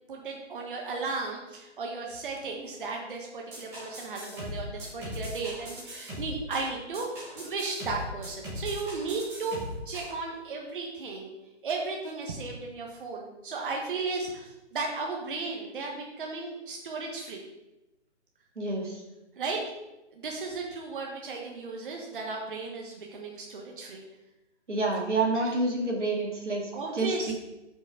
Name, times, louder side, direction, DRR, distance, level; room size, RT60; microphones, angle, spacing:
voice 1, 0.1-7.1 7.4-11.3 11.6-17.4 19.3-19.7 20.1-24.0 25.3-25.5 26.7-27.3, right 3 dB, 45° right, 0 dB, 1.2 m, -35 dB
sound 1, 3.5-10.1, left 1 dB, 5° right, 0.9 m, -39 dB
voice 2, 18.6-19.0 24.7-27.3, right 2 dB, 80° right, -1 dB, 2.2 m, -28 dB
6.2 x 5.3 x 4.9 m, 0.99 s
figure-of-eight pair, 155°, 35 cm